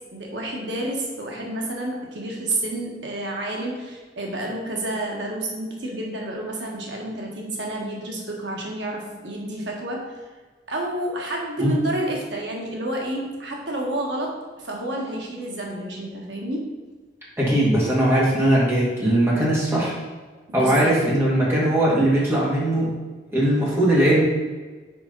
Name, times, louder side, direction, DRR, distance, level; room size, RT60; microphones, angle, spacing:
voice 1, 0.1-10.2 10.7-16.7 20.5-21.0, right 1 dB, 80° right, -1 dB, 1.3 m, -30 dB
voice 2, 17.4-19.9 20.5-22.9 23.3-24.2, right 1 dB, 15° right, -6 dB, 2.0 m, -19 dB
5.9 x 4.9 x 5.3 m, 1.3 s
head